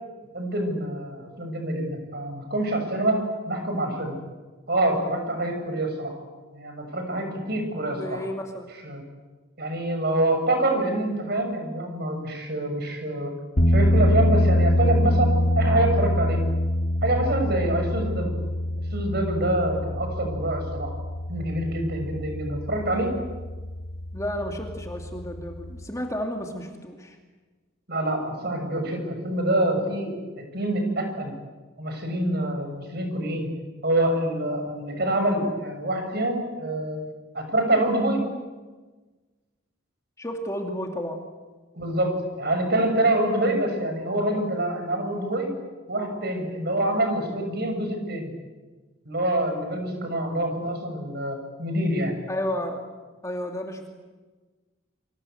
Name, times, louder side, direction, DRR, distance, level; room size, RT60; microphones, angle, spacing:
voice 1, 0.3-4.2 4.7-6.1 6.5-8.2 8.8-9.0 9.6-13.3 13.7-16.4 17.0-18.4 18.9-20.9 21.3-23.2 27.9-31.3 31.8-33.5 33.8-37.0 37.3-38.2 41.7-45.5 45.9-48.3 49.0-52.1, right 1 dB, 50° right, 4 dB, 6.9 m, -26 dB
voice 2, 7.9-8.7 24.1-27.2 40.2-41.2 52.3-52.8 53.2-53.9, equal, 15° left, 2 dB, 2.6 m, -32 dB
sound 1, 13.6-25.9, equal, 55° left, 2.8 m, -25 dB
28.5 x 25.0 x 8.0 m, 1.3 s
head